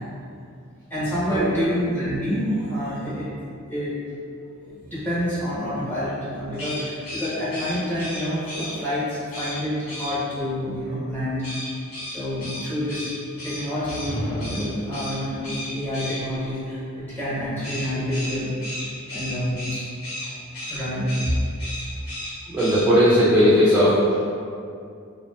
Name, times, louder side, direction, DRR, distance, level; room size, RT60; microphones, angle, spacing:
voice 1, 0.9-3.3 3.7-3.9 4.6-11.5 12.1-13.1 13.4-18.5 19.1-19.8 20.6-21.1, equal, 10° left, -11 dB, 0.8 m, -28 dB
sound 1, 6.5-8.7 9.3-9.6 9.9-10.1 11.4-14.1 14.4-14.6 14.9-15.2 15.4-16.2 17.6-20.3 20.5-20.8 21.1-21.3 21.6-22.3 22.6-22.8, left 1 dB, 70° left, 1.1 m, -34 dB
sound 2, 13.7-14.9, equal, 90° left, 1.4 m, -32 dB
voice 2, 22.5-24.2, equal, 10° right, -11 dB, 0.3 m, -17 dB
2.6 x 2.3 x 2.2 m, 2.4 s
head